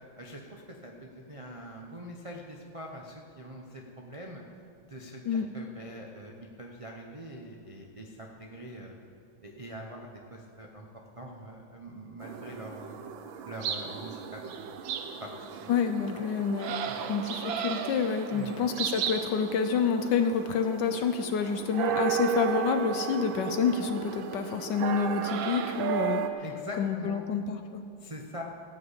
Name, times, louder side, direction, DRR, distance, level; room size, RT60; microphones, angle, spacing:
voice 1, 0.0-4.4 4.8-9.0 9.4-10.9 11.2-13.0 13.5-14.7 15.2-15.3 15.6-15.7 16.8-17.0 18.3-18.6 26.4-27.2 28.0-28.4, equal, 40° right, -1 dB, 0.4 m, -43 dB
sound 1, 12.2-26.3, right 7 dB, 70° right, 1.5 m, -34 dB
voice 2, 15.7-16.8 17.1-26.3 26.8-27.8, left 6 dB, 70° left, 8 dB, 1.1 m, -28 dB
17.0 x 6.0 x 8.1 m, 2.5 s
omnidirectional pair, 2.3 m